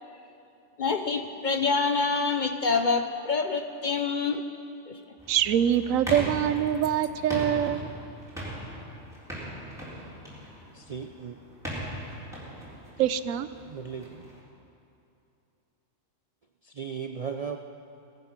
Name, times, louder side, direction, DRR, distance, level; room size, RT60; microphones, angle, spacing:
voice 1, 0.8-4.4 4.9-5.0, left 4 dB, 50° left, 7 dB, 0.6 m, -26 dB
sound 1, 5.2-14.4, equal, ahead, 3.7 m, -39 dB
voice 2, 5.3-7.9 13.0-13.5, right 10 dB, 90° right, 13 dB, 1.0 m, -24 dB
voice 3, 10.7-11.4 13.7-14.3 16.6-17.6, right 6 dB, 55° right, 5 dB, 0.4 m, -36 dB
17.5 x 11.0 x 6.0 m, 2.7 s
omnidirectional pair, 1.4 m